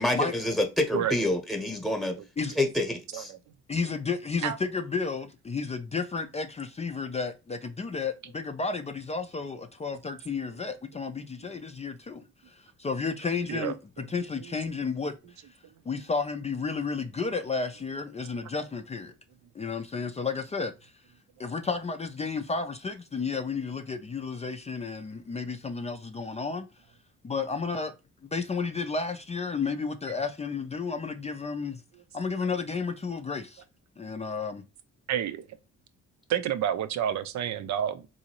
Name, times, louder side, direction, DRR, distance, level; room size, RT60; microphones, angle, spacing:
voice 1, 0.0-2.2 2.5-3.3, left 1 dB, ahead, 1.0 m, -27 dB
voice 2, 2.2-2.6 3.1-3.4 4.4-4.6 10.5-10.6 11.4-11.5 13.5-14.5 31.9-32.0 35.1-35.5 36.3-38.1, right 10 dB, 65° right, 0.6 m, -31 dB
voice 3, 3.7-12.2 12.8-13.7 14.1-15.1 15.9-19.1 19.6-20.7 21.4-26.7 27.2-27.9 28.3-31.8 32.1-33.6 34.0-34.6, left 4 dB, 20° left, 0.4 m, -32 dB
3.9 x 2.7 x 2.9 m
cardioid pair, 90°, 30 cm